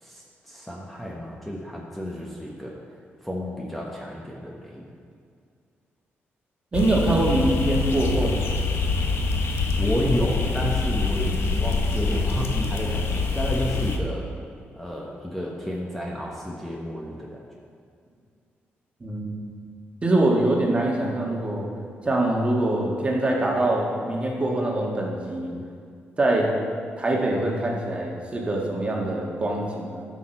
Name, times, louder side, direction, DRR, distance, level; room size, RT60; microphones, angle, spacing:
voice 1, 0.0-2.8 3.2-4.8 9.1-9.3 9.8-14.3 14.7-17.4, equal, 5° left, -3 dB, 1.1 m, -31 dB
sound 1, 6.7-14.0, left 4 dB, 65° left, 0.9 m, -25 dB
voice 2, 6.7-8.5 19.0-19.4 20.0-21.7 22.0-25.5 26.2-26.6 27.0-30.0, right 2 dB, 25° right, -1 dB, 1.6 m, -24 dB
11.0 x 6.4 x 4.4 m, 2.3 s
cardioid pair, 105°, 4 cm